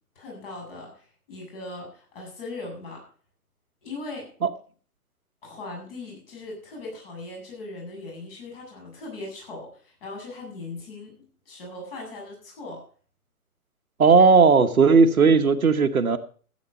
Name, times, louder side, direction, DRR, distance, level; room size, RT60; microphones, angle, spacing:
voice 1, 0.2-3.0 3.8-4.3 5.4-12.8, left 2 dB, 40° left, -1 dB, 7.5 m, -39 dB
voice 2, 14.0-16.2, right 4 dB, 70° right, 8 dB, 1.3 m, -16 dB
14.5 x 8.5 x 5.5 m, 0.43 s
figure-of-eight pair, 135°, 45 cm